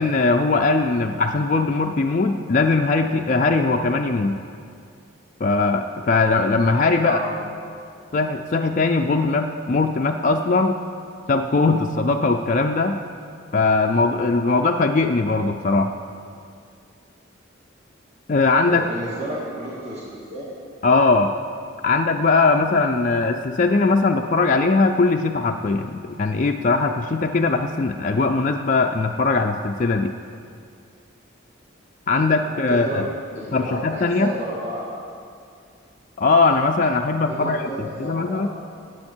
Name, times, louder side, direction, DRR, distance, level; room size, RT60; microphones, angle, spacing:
voice 1, 0.0-4.4 5.4-7.2 8.1-10.8 11.3-13.0 13.5-15.9 18.3-18.8 20.8-21.3 21.8-30.1 32.1-33.0 33.5-34.3 36.2-37.6 38.0-38.5, left 3 dB, 40° left, 3 dB, 0.4 m, -20 dB
voice 2, 7.0-7.3 18.7-20.5 32.4-34.8 37.3-38.4, right 1 dB, 35° right, -7 dB, 1.9 m, -31 dB
18.0 x 8.0 x 4.5 m, 2.3 s
head